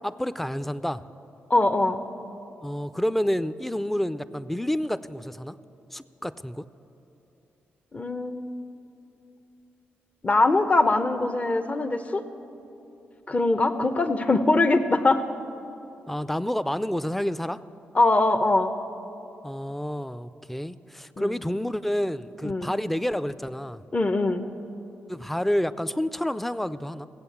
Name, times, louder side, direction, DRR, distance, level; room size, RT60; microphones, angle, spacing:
voice 1, 0.0-1.1 2.6-5.5 5.9-6.6 16.1-17.6 19.4-23.8 25.1-27.1, equal, 5° left, 14 dB, 0.5 m, -29 dB
voice 2, 1.5-2.0 7.9-8.4 10.2-12.2 13.3-15.2 17.9-18.7 21.2-21.3 22.4-22.7 23.9-24.4, left 2 dB, 30° left, 7 dB, 0.8 m, -22 dB
16.5 x 8.3 x 7.1 m, 2.9 s
supercardioid pair, 55°, 5 cm